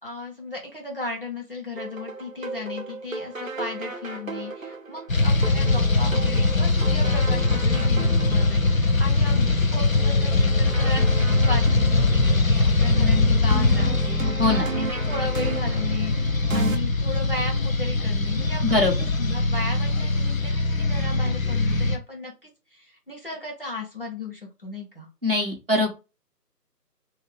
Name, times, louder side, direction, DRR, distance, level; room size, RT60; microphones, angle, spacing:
voice 1, 0.0-14.5 14.8-16.1 16.5-18.8 19.2-22.3 22.7-25.1, left 3 dB, 35° left, -1 dB, 1.0 m, -35 dB
sound 1, 1.8-16.8, right 3 dB, 55° right, 0.5 m, -34 dB
sound 2, 5.1-22.0, left 3 dB, 55° left, 0.6 m, -22 dB
voice 2, 14.4-14.7 18.6-19.1 25.2-25.9, left 2 dB, 35° right, -2 dB, 1.1 m, -22 dB
3.9 x 2.7 x 3.3 m, 0.29 s
figure-of-eight pair, 165°, 49 cm